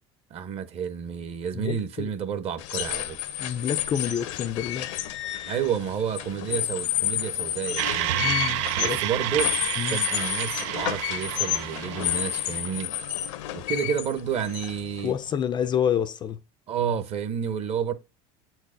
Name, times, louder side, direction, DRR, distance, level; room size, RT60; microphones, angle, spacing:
voice 1, 0.3-3.2 5.4-8.2 8.8-9.5 9.8-12.9 13.5-15.1 16.7-17.9, right 8 dB, 40° right, 0.9 m, -30 dB
voice 2, 1.5-2.1 3.4-4.9 8.1-9.0 9.8-10.0 15.0-16.4, left 8 dB, 30° left, 0.4 m, -28 dB
sound 1, 2.6-15.3, left 14 dB, 85° left, 0.9 m, -31 dB
sound 2, 7.8-12.8, right 14 dB, 90° right, 0.4 m, -30 dB
8.3 x 4.6 x 5.0 m
cardioid pair, 140°, 15 cm